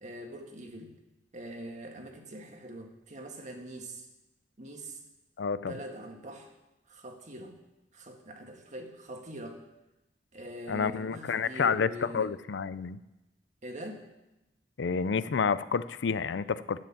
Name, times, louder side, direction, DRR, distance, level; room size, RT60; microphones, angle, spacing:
voice 1, 0.0-0.9 1.3-4.1 4.6-5.0 5.7-6.5 6.9-7.5 7.9-9.6 10.3-12.3 13.6-14.1, right 1 dB, 45° right, 3 dB, 1.7 m, -43 dB
voice 2, 5.4-5.7 10.7-11.9 12.1-13.0 14.8-16.8, left 5 dB, 85° left, 16 dB, 0.5 m, -29 dB
11.0 x 7.8 x 8.7 m, 0.97 s
head